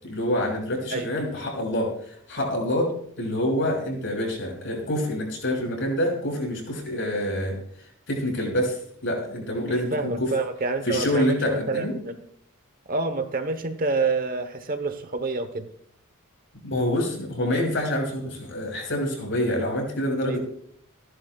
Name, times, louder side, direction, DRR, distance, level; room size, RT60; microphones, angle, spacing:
voice 1, 0.0-2.9 3.2-7.6 8.1-10.3 10.8-11.9 16.6-20.4, left 1 dB, 60° left, 0 dB, 6.1 m, -26 dB
voice 2, 9.7-12.2 12.9-15.7 20.3-20.4, right 3 dB, 40° right, 8 dB, 1.0 m, -28 dB
29.0 x 11.5 x 2.4 m, 0.64 s
head